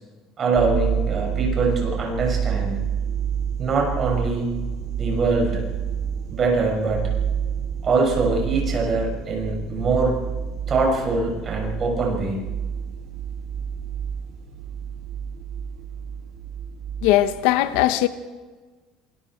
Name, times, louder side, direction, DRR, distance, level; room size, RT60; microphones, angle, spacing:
voice 1, 0.4-2.7 3.6-4.5 5.0-5.6 6.3-7.0 7.8-10.2 10.7-12.4, right 3 dB, 25° right, 6.4 m, -23 dB
sound 1, 0.5-17.3, right 8 dB, 45° right, 4.4 m, -29 dB
voice 2, 17.0-18.1, left 14 dB, 80° left, 1.1 m, -19 dB
27.0 x 22.0 x 4.6 m
cardioid pair, 165°, 0 cm